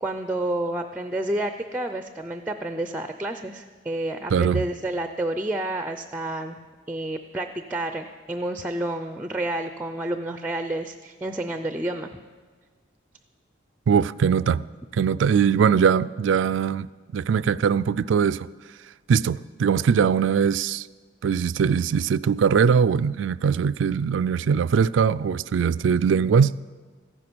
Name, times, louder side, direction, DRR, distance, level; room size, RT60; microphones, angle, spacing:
voice 1, 0.0-6.6 6.9-12.1, right 1 dB, 10° right, 0.5 m, -29 dB
voice 2, 4.3-4.6 13.9-14.7 14.9-16.9 17.1-18.5 19.1-20.9 21.2-26.6, right 6 dB, 75° right, 0.3 m, -21 dB
14.5 x 11.0 x 6.1 m
head